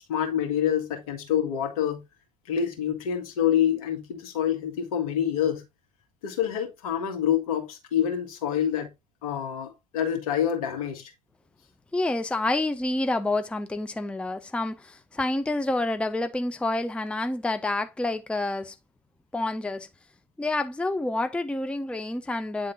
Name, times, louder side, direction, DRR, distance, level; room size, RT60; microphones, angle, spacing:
voice 1, 0.0-2.0 2.5-5.6 6.2-8.9 9.2-11.1, left 9 dB, 70° left, 1.7 m, -27 dB
voice 2, 11.9-18.8 19.3-19.9 20.4-22.7, left 2 dB, 5° left, 0.6 m, -28 dB
9.2 x 3.7 x 3.6 m
figure-of-eight pair, 65°, 19 cm